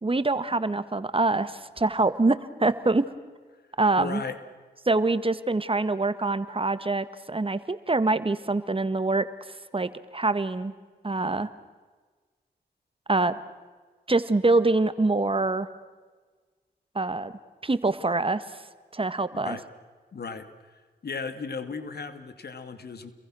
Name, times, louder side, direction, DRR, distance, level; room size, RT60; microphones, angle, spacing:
voice 1, 0.0-3.1 3.8-4.2 4.8-10.7 11.0-11.5 13.1-13.4 14.1-15.7 16.9-17.3 17.6-18.6 18.9-19.6, right 3 dB, 30° right, 12 dB, 1.6 m, -25 dB
voice 2, 4.0-4.4 19.3-19.6 20.1-23.1, left 5 dB, 65° left, 10 dB, 2.3 m, -36 dB
30.0 x 22.5 x 6.3 m, 1.4 s
supercardioid pair, 45°, 18 cm